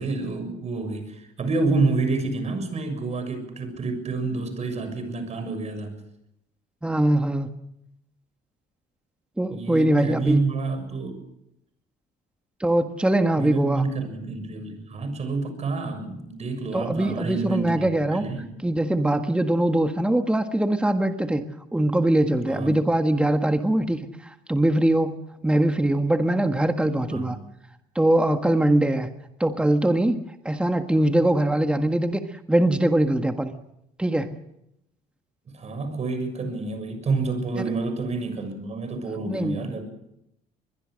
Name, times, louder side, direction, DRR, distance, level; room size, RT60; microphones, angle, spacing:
voice 1, 0.0-6.0 9.5-11.2 13.4-18.5 22.5-22.8 27.1-27.3 35.5-39.8, right 3 dB, 40° right, 9 dB, 6.7 m, -28 dB
voice 2, 6.8-7.5 9.4-10.4 12.6-13.8 16.7-18.3 18.6-21.4 21.7-27.4 27.9-29.1 29.4-32.2 32.5-33.5 34.0-34.3 37.6-37.7 39.3-39.6, right 1 dB, 5° right, 6 dB, 1.5 m, -22 dB
23.0 x 22.0 x 6.5 m, 0.81 s
cardioid pair, 110°, 17 cm